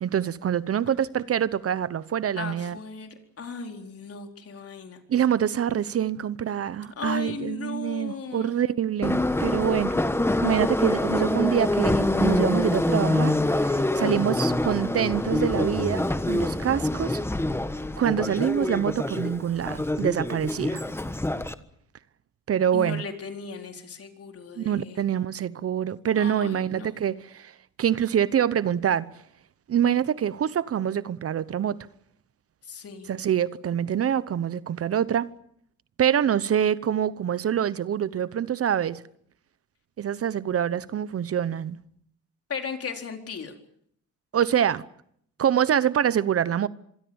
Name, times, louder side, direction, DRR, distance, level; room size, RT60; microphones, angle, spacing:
voice 1, 0.0-2.8 5.1-10.0 10.4-17.2 18.0-20.8 22.5-23.0 24.6-27.5 27.8-29.1 29.7-31.8 33.1-35.3 36.0-39.0 40.0-41.8 44.3-44.8 45.4-46.7, right 9 dB, 50° right, 0.9 m, -25 dB
voice 2, 2.4-5.0 7.0-8.5 22.7-25.0 26.2-26.9 32.7-33.1 42.5-43.5, left 5 dB, 50° left, 4.3 m, -36 dB
Subway metro underground, 9.0-21.5, left 1 dB, 10° left, 1.3 m, -25 dB
26.0 x 23.0 x 7.2 m
cardioid pair, 90°, 30 cm